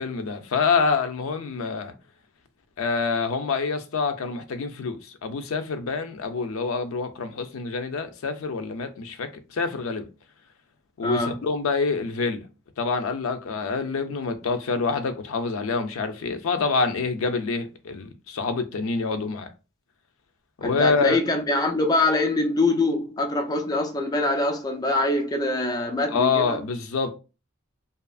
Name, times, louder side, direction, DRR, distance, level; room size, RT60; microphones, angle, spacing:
voice 1, 0.0-1.9 2.8-10.1 11.0-12.5 12.8-19.5 20.6-21.2 26.1-27.1, left 4 dB, 85° left, 0.4 m, -26 dB
voice 2, 11.0-11.4 20.6-26.6, left 2 dB, 20° left, 0.3 m, -24 dB
2.8 x 2.4 x 2.3 m
head